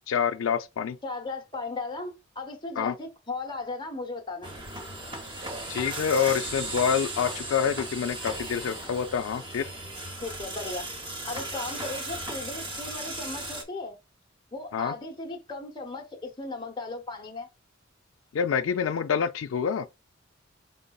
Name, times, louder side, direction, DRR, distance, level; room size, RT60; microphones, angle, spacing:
voice 1, 0.1-1.0 2.8-2.9 5.7-9.7 14.7-14.9 18.3-19.9, left 7 dB, 75° left, 0.3 m, -27 dB
voice 2, 1.0-4.5 10.2-10.9 11.3-14.0 14.5-17.5, left 3 dB, 25° left, 0.9 m, -36 dB
sound 1, 4.4-13.6, right 2 dB, 25° right, 1.0 m, -36 dB
5.2 x 3.7 x 2.3 m
head